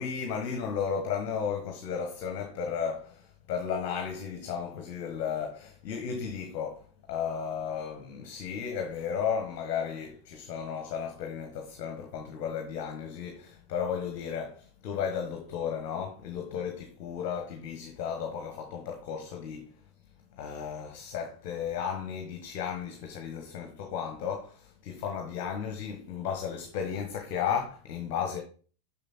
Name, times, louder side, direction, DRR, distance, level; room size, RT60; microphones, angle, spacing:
voice 1, 0.0-19.7 20.3-28.4, left 7 dB, 45° left, 1.4 m, -34 dB
6.9 x 6.3 x 4.3 m
figure-of-eight pair, 90°, 0 cm